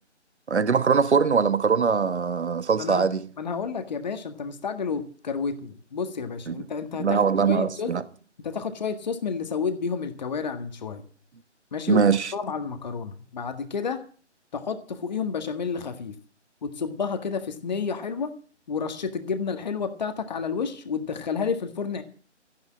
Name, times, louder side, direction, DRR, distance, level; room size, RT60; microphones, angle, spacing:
voice 1, 0.5-3.2 6.5-6.6 7.0-8.0 11.9-12.3, right 6 dB, 65° right, 1.3 m, -22 dB
voice 2, 3.4-7.9 8.4-11.0 11.7-12.0 12.3-14.0 14.5-16.1 16.6-18.3 18.7-22.0, left 5 dB, 35° left, 1.7 m, -30 dB
14.5 x 10.5 x 7.5 m
figure-of-eight pair, 160°, 36 cm